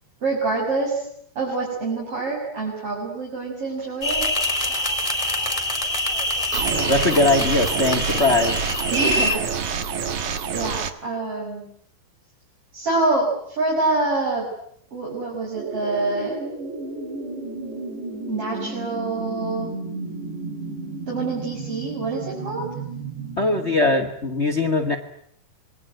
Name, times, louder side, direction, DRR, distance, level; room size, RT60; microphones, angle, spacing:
voice 1, 0.2-1.1 1.4-4.3 8.9-9.5 9.9-10.1 10.5-11.6 12.7-14.5 14.9-16.4 18.3-19.8 21.1-22.7, right 3 dB, 30° right, -2 dB, 7.5 m, -26 dB
sound 1, 4.0-9.4, left 1 dB, 10° left, 2.9 m, -25 dB
sound 2, 6.5-10.9, right 7 dB, 60° right, 1.5 m, -27 dB
voice 2, 6.7-8.5 23.4-24.9, left 2 dB, 60° left, 7 dB, 0.6 m, -20 dB
sound 3, 15.5-24.1, right 3 dB, 80° right, 5.7 m, -33 dB
28.0 x 22.0 x 9.1 m, 0.69 s
omnidirectional pair, 4.9 m